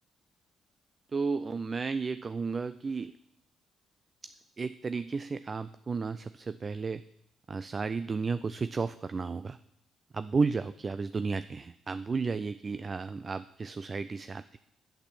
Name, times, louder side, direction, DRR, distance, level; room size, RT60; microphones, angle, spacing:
voice 1, 1.1-3.1 4.2-4.3 4.6-7.0 7.5-9.6 10.1-14.6, right 4 dB, 35° right, 13 dB, 0.4 m, -33 dB
8.7 x 8.1 x 6.9 m, 0.79 s
cardioid pair, 90°, 0 cm